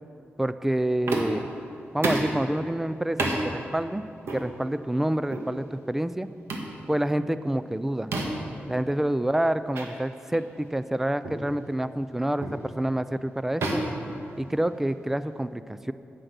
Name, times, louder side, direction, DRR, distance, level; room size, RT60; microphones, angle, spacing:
voice 1, 0.4-1.4 1.9-4.0 4.3-6.3 6.9-8.1 8.7-13.8 14.4-15.9, right 1 dB, 10° right, 13 dB, 0.3 m, -27 dB
sound 1, 1.1-1.5 2.0-2.4 3.2-3.4 4.3-4.5 5.3-5.5 6.5-6.7 8.1-8.5 9.7-9.9 10.3-10.5 11.2-11.5 12.4-12.7 13.6-14.8, right 2 dB, 80° right, 1.4 m, -29 dB
9.9 x 7.9 x 6.7 m, 2.7 s
wide cardioid pair, 130°, 4 cm